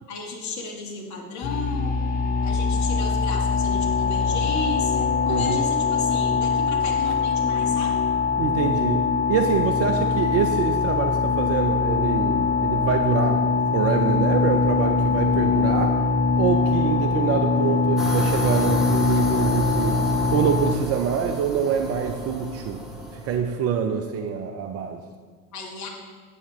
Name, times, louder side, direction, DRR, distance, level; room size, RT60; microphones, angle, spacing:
voice 1, 0.1-2.0 2.4-8.0 25.5-25.9, left 3 dB, 40° left, 0 dB, 1.7 m, -33 dB
sound 1, 1.4-20.7, left 4 dB, 20° left, 0.5 m, -22 dB
voice 2, 5.3-5.6 8.4-9.0 9.3-13.4 13.7-16.0 16.4-20.0 20.3-22.8 23.1-25.0, right 7 dB, 35° right, 5 dB, 0.5 m, -25 dB
sound 2, 18.0-23.4, equal, ahead, 1.3 m, -33 dB
8.1 x 8.0 x 3.1 m, 1.5 s
figure-of-eight pair, 70°, 45 cm